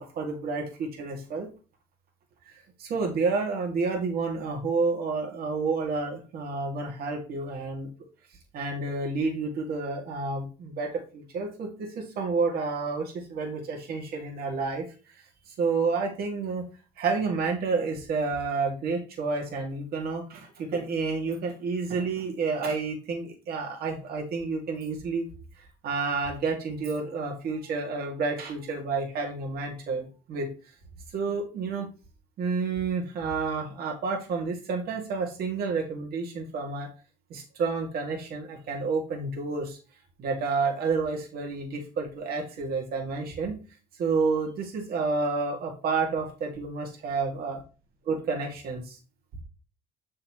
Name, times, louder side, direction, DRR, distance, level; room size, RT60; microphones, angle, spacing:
voice 1, 0.0-1.5 2.5-2.6 2.8-7.9 8.5-14.9 15.1-16.7 17.0-25.3 25.6-30.5 31.1-31.9 32.4-36.9 37.3-39.8 40.2-43.6 44.0-47.6 48.1-49.0, right 4 dB, 65° right, 1 dB, 2.6 m, -30 dB
7.8 x 6.2 x 3.2 m, 0.34 s
cardioid pair, 110°, 17 cm